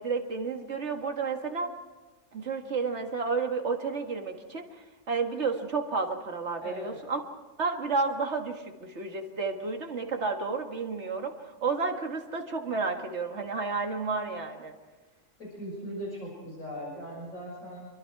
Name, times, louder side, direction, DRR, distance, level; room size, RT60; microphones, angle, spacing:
voice 1, 0.0-1.7 2.3-7.2 7.6-14.7, right 4 dB, 55° right, 4 dB, 2.0 m, -31 dB
voice 2, 6.6-7.0 15.4-17.9, equal, 80° left, -3 dB, 6.8 m, -39 dB
27.0 x 23.0 x 4.7 m, 1.2 s
omnidirectional pair, 1.4 m